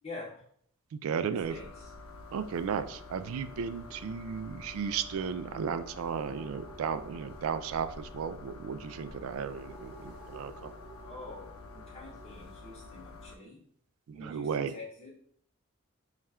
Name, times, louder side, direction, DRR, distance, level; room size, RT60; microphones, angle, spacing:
voice 1, 0.0-0.3 1.1-1.9 11.0-13.6 14.1-15.1, left 2 dB, 30° left, -7 dB, 1.1 m, -46 dB
voice 2, 1.0-1.6 2.3-10.7 14.1-14.7, right 7 dB, 80° right, 13 dB, 0.3 m, -34 dB
sound 1, 1.4-13.3, left 3 dB, 90° left, 0.5 m, -48 dB
sound 2, 2.6-12.3, right 2 dB, ahead, 1.1 m, -55 dB
4.2 x 2.4 x 3.4 m, 0.62 s
head